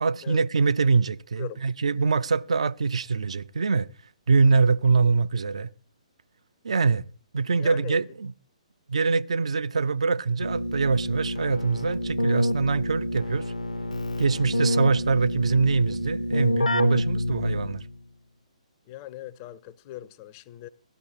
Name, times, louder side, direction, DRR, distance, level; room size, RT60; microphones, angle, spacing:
voice 1, 0.0-3.9 4.3-5.7 6.6-7.0 7.3-8.3 8.9-13.5 14.2-17.8, right 4 dB, 60° right, 0.4 m, -24 dB
voice 2, 7.6-8.0 18.9-20.7, left 14 dB, 25° left, 0.5 m, -40 dB
Keyboard (musical), 10.4-18.0, left 1 dB, 80° left, 0.7 m, -28 dB
17.5 x 12.5 x 2.6 m
figure-of-eight pair, 130°, 4 cm